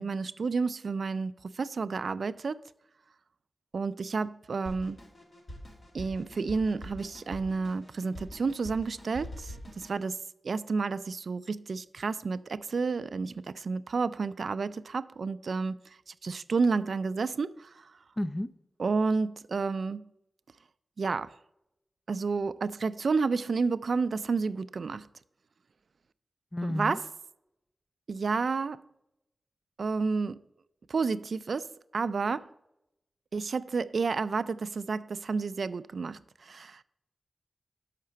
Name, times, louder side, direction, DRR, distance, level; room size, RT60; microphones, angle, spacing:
voice 1, 0.0-2.6 3.7-5.0 5.9-10.2 10.4-15.8 16.1-17.9 18.8-20.0 21.0-21.3 22.1-25.1 26.6-27.1 28.1-28.8 29.8-30.4 30.9-32.5 33.3-36.8, right 4 dB, 75° right, 0.3 m, -30 dB
Drum kit, 4.7-10.0, equal, 60° left, 2.4 m, -45 dB
voice 2, 18.2-18.5 26.5-27.0, left 1 dB, 20° left, 0.4 m, -32 dB
6.6 x 5.7 x 7.3 m
wide cardioid pair, 95°, 0 cm